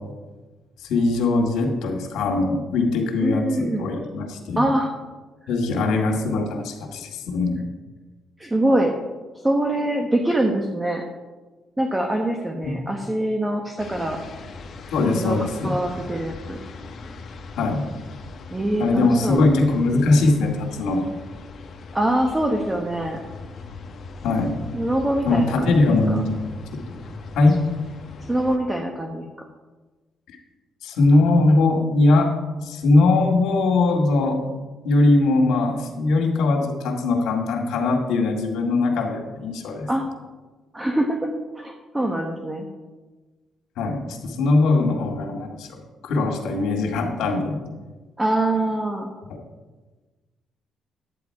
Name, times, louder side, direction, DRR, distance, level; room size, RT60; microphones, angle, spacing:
voice 1, 0.8-4.7 5.5-7.6 12.6-12.8 14.9-15.7 17.6-17.8 18.8-21.1 24.2-24.6 25.3-26.8 27.3-27.6 30.3-30.4 30.8-34.4 34.8-39.9 43.8-47.6, left 2 dB, 80° left, 1 dB, 2.1 m, -21 dB
voice 2, 3.2-3.9 4.6-4.9 8.4-9.0 9.4-11.0 11.8-14.2 15.0-16.6 18.5-19.4 21.9-23.2 24.7-26.2 28.3-29.3 39.9-40.1 40.7-41.3 41.5-42.7 48.2-49.1, right 1 dB, 15° right, 3 dB, 1.1 m, -24 dB
sound 1, 13.8-28.6, left 3 dB, 55° left, 1.2 m, -40 dB
10.5 x 9.1 x 4.7 m, 1.3 s
cardioid pair, 90°, 0 cm